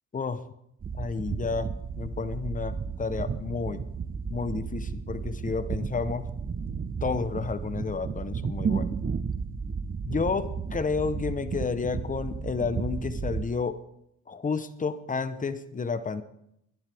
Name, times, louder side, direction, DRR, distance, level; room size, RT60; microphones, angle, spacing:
sound 1, 0.8-13.4, right 5 dB, 30° right, 0.7 m, -33 dB
voice 1, 1.0-1.7 2.0-3.8 4.3-6.3 7.0-8.9 10.0-13.8 14.3-16.2, left 4 dB, 25° left, 11 dB, 1.0 m, -31 dB
21.5 x 11.0 x 3.6 m, 0.78 s
cardioid pair, 90°, 30 cm